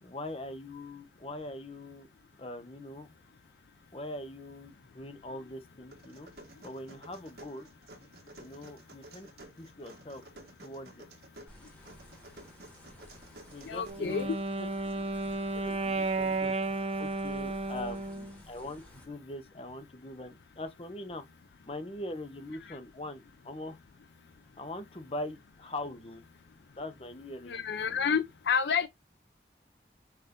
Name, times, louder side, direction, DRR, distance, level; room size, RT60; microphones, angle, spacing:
voice 1, 0.0-2.1 2.4-3.1 3.9-6.3 6.6-7.7 8.4-9.3 9.6-10.2 10.6-11.1 13.5-14.3 15.5-16.5 17.0-21.2 21.7-23.8 24.6-26.2 26.8-28.1, left 1 dB, 30° left, 0.7 m, -42 dB
sound 1, 5.9-13.9, right 1 dB, 65° right, 1.6 m, -52 dB
sound 2, 11.5-19.1, equal, 10° left, 1.2 m, -55 dB
voice 2, 13.6-14.4 15.2-15.4 27.5-28.9, left 6 dB, 75° left, 0.4 m, -30 dB
Wind instrument woodwind instrument, 13.8-18.4, right 2 dB, 35° right, 0.6 m, -33 dB
5.7 x 2.6 x 3.6 m
head